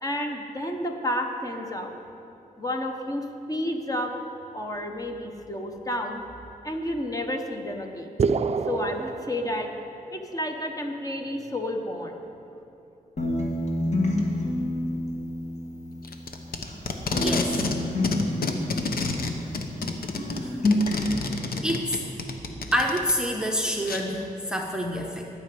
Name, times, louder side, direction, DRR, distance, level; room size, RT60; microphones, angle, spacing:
voice 1, 0.0-2.0 2.6-4.1 4.5-6.2 6.6-8.1 8.7-9.7 10.1-12.2, left 1 dB, 25° left, 3 dB, 1.0 m, -31 dB
sound 1, 8.2-10.1, right 5 dB, 45° right, 0.4 m, -27 dB
sound 2, 13.2-16.8 17.1-19.9 20.2-21.2, left 1 dB, 50° left, 1.8 m, -28 dB
Packing tape duct tape, 16.0-17.8 18.0-23.1 23.9-24.0, left 4 dB, 75° left, 1.0 m, -29 dB
voice 2, 17.2-17.6 20.3-20.5 21.0-21.1 21.6-22.0 22.7-25.3, equal, 5° right, 1 dB, 0.8 m, -27 dB
12.5 x 5.9 x 9.1 m, 2.9 s
wide cardioid pair, 120°, 15 cm